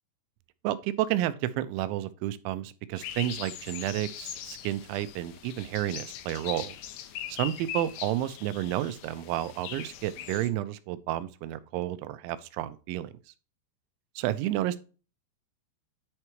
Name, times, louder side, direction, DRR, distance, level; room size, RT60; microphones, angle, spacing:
voice 1, 0.6-6.8 7.3-13.1 14.2-14.8, right 13 dB, 85° right, 3.0 m, -31 dB
sound 1, 3.0-10.5, left 10 dB, 80° left, 2.4 m, -41 dB
9.8 x 4.6 x 3.0 m
omnidirectional pair, 5.5 m